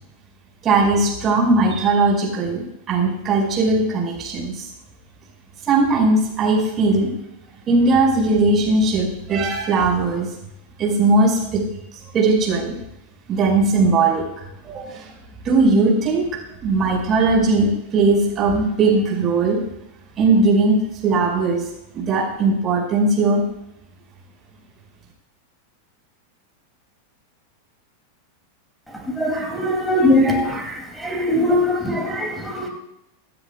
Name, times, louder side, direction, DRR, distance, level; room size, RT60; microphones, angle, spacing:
voice 1, 0.6-2.6 2.9-4.7 5.7-7.1 7.7-10.3 10.8-11.6 12.1-12.7 13.3-14.2 14.7-15.1 15.4-16.3 16.6-19.6 20.2-20.8 21.0-21.6 21.9-23.4, right 3 dB, 30° right, -2 dB, 5.6 m, -18 dB
voice 2, 29.2-30.6 31.0-32.7, left 1 dB, 5° left, 1 dB, 2.9 m, -20 dB
26.5 x 9.7 x 2.4 m, 0.84 s
figure-of-eight pair, 90°, 0 cm